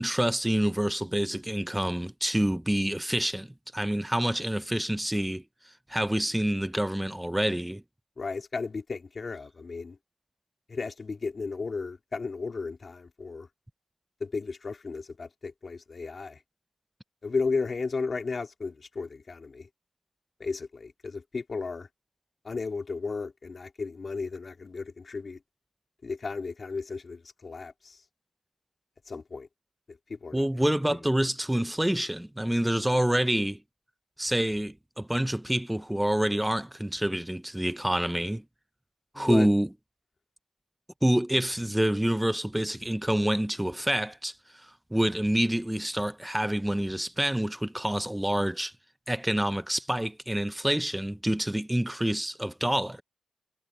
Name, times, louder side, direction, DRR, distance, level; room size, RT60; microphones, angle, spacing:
voice 1, 0.0-3.5 3.7-5.4 5.9-7.8 30.3-33.6 34.2-38.4 39.1-39.7 41.0-48.7 49.1-53.0, right 1 dB, 5° right, 0.6 m, -27 dB
voice 2, 8.2-10.0 10.7-13.5 14.2-16.4 17.2-19.7 20.4-21.9 22.4-25.4 26.0-28.0 29.1-29.5 29.9-30.4 39.1-39.5, left 4 dB, 40° left, 3.3 m, -34 dB
cardioid pair, 100°, 0 cm